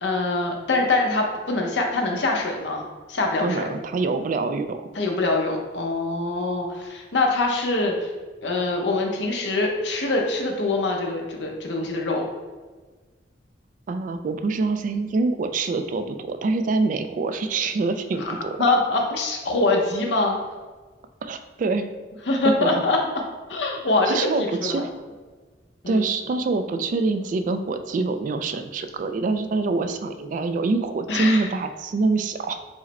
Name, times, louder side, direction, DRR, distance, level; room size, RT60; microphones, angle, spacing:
voice 1, 0.0-2.8 3.1-3.7 4.9-8.1 8.4-12.3 18.2-18.3 18.6-20.4 22.3-23.0 23.5-24.8 25.8-26.1 31.1-31.5, left 2 dB, 85° left, 1 dB, 0.8 m, -24 dB
voice 2, 3.4-4.8 13.9-18.5 21.2-21.9 22.4-22.7 24.1-24.9 25.9-32.6, right 3 dB, 45° right, 8 dB, 0.3 m, -25 dB
4.7 x 2.1 x 4.1 m, 1.4 s
head